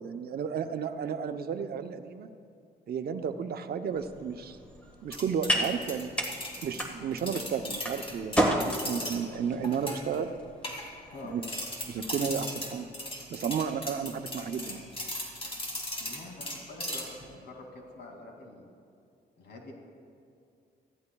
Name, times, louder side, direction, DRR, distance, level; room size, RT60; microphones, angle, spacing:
voice 1, 0.0-2.3 2.9-4.6 5.0-6.1 6.6-10.3 11.3-11.4 11.9-12.9 13.3-14.8, right 7 dB, 65° right, 7 dB, 0.7 m, -33 dB
sound 1, 3.9-12.3, equal, 5° left, 1.5 m, -34 dB
sound 2, 5.1-9.2 9.6-10.2 10.6-11.2 11.4-17.3, left 1 dB, 35° left, 2.5 m, -38 dB
voice 2, 16.0-18.6 19.4-19.7, left 2 dB, 80° left, 1 dB, 2.4 m, -46 dB
24.5 x 15.0 x 2.3 m, 2.4 s
cardioid pair, 120°, 17 cm